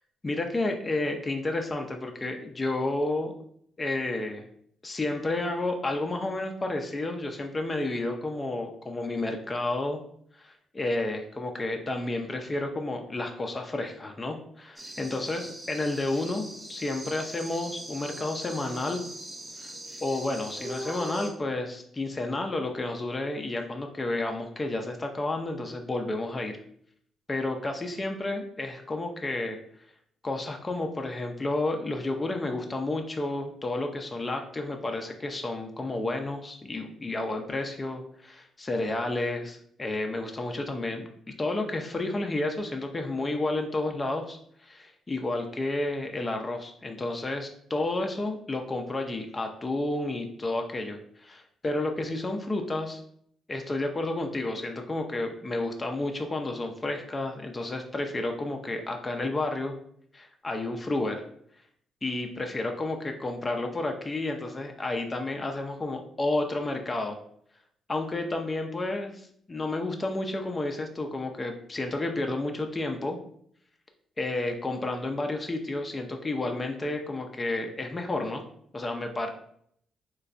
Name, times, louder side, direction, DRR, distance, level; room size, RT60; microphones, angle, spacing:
voice 1, 0.2-3.3 3.8-4.5 4.8-10.0 10.3-19.0 19.6-19.7 20.0-26.6 27.3-29.6 30.2-41.1 41.4-53.0 53.5-59.8 60.1-61.2 62.0-67.2 67.9-73.2 74.2-78.4 78.7-79.3, left 2 dB, 25° left, 4 dB, 0.4 m, -31 dB
sound 1, 14.8-21.3, right 1 dB, 20° right, 0.8 m, -40 dB
4.1 x 2.2 x 2.5 m, 0.66 s
cardioid pair, 90°, 0 cm